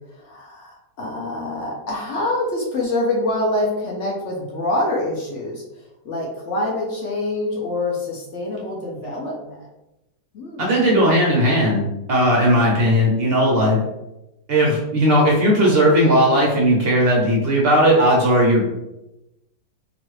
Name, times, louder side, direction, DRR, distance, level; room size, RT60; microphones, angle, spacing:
voice 1, 0.2-5.6 6.0-9.6 10.3-10.7, left 1 dB, 65° left, -2 dB, 0.7 m, -25 dB
voice 2, 10.6-13.8 14.5-18.6, equal, 60° right, -3 dB, 0.6 m, -17 dB
3.0 x 2.5 x 3.1 m, 0.92 s
omnidirectional pair, 1.9 m